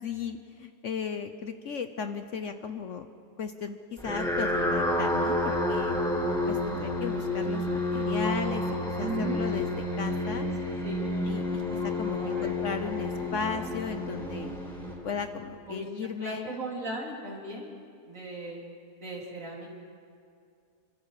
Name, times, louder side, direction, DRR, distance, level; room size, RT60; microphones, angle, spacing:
voice 1, 0.0-3.1 3.4-6.0 6.5-8.7 9.0-9.7 10.0-10.5 11.2-11.6 12.0-14.5 15.0-16.5, left 6 dB, 55° left, 8 dB, 1.1 m, -35 dB
sound 1, 4.0-15.4, left 1 dB, 5° left, 4.4 m, -30 dB
voice 2, 9.0-9.4 10.8-11.1 12.2-12.5 15.7-15.9 16.2-17.8 18.1-18.6 19.0-19.8, right 2 dB, 55° right, -2 dB, 3.9 m, -37 dB
27.5 x 24.0 x 4.9 m, 2.4 s
omnidirectional pair, 1.7 m